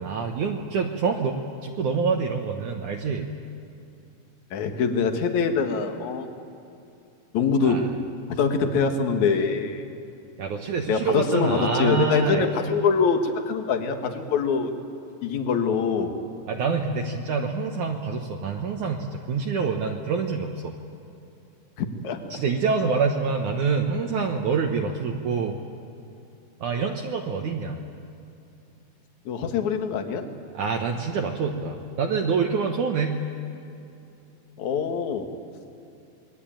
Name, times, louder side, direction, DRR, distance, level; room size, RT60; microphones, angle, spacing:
voice 1, 0.0-3.3 7.6-7.9 10.4-12.5 16.5-20.8 22.3-25.6 26.6-27.8 30.5-33.2, right 5 dB, 60° right, 2 dB, 2.4 m, -26 dB
voice 2, 4.5-6.3 7.3-7.9 8.4-9.8 10.9-14.7 15.2-16.1 21.8-22.2 29.3-30.3 34.6-35.3, left 5 dB, 55° left, 6 dB, 2.8 m, -24 dB
28.0 x 21.5 x 9.0 m, 2.7 s
omnidirectional pair, 4.5 m